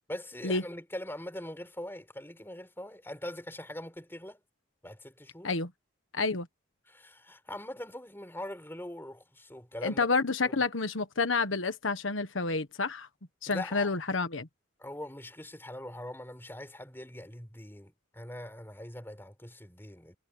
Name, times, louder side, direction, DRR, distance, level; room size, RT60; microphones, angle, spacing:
voice 1, 0.1-4.4 4.8-5.5 6.9-10.1 10.4-10.5 13.5-13.9 14.8-20.2, left 1 dB, 10° left, 5.1 m, -42 dB
voice 2, 6.1-6.5 9.8-13.1 13.4-14.5, left 3 dB, 90° left, 1.4 m, -29 dB
head